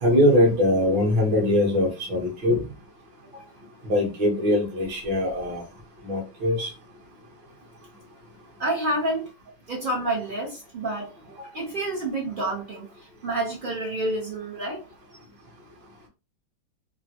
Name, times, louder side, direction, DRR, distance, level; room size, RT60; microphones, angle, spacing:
voice 1, 0.0-2.6 3.8-5.6 6.0-6.7, left 1 dB, 60° right, -1 dB, 1.7 m, -22 dB
voice 2, 8.6-9.3 9.7-11.1 11.4-14.8, right 1 dB, 85° right, -4 dB, 0.4 m, -29 dB
3.8 x 2.1 x 2.8 m, 0.29 s
omnidirectional pair, 2.3 m